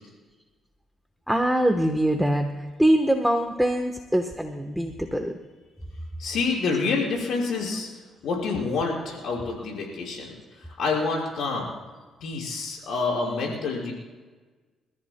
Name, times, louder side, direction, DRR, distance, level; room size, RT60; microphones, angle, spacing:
voice 1, 1.3-2.5 2.8-5.3, right 1 dB, ahead, 4 dB, 1.1 m, -23 dB
voice 2, 6.2-7.9 8.2-10.3 10.8-11.7 12.2-13.9, left 4 dB, 70° left, -2 dB, 5.5 m, -27 dB
30.0 x 14.0 x 2.2 m, 1.3 s
cardioid pair, 90°, 0 cm